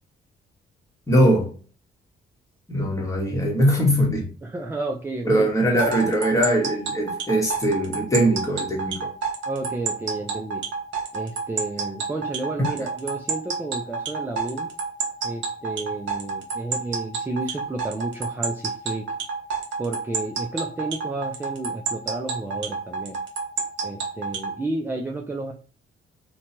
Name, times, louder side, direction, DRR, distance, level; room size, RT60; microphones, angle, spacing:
voice 1, 1.1-1.5 2.7-4.3 5.2-9.1, right 1 dB, 15° left, 1.1 m, -21 dB
voice 2, 4.4-5.5 9.5-10.6 11.1-14.7 15.2-19.0 19.8-23.2 23.8-25.5, right 2 dB, 10° right, 0.4 m, -31 dB
sound 1, 5.8-24.5, right 5 dB, 70° right, 0.9 m, -28 dB
2.8 x 2.2 x 2.8 m
cardioid pair, 90°, 20 cm